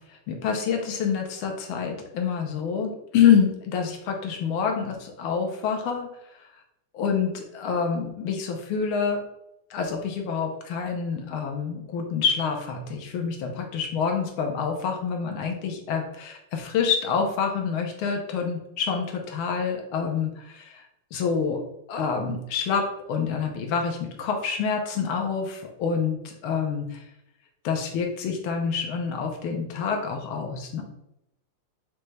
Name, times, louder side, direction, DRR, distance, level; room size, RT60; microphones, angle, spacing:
voice 1, 0.1-6.1 6.9-9.2 9.7-20.8 21.1-21.6 21.9-26.2 26.4-27.0 27.6-30.8, left 6 dB, 85° left, 3 dB, 1.6 m, -27 dB
5.3 x 2.2 x 3.2 m, 0.83 s
omnidirectional pair, 2.3 m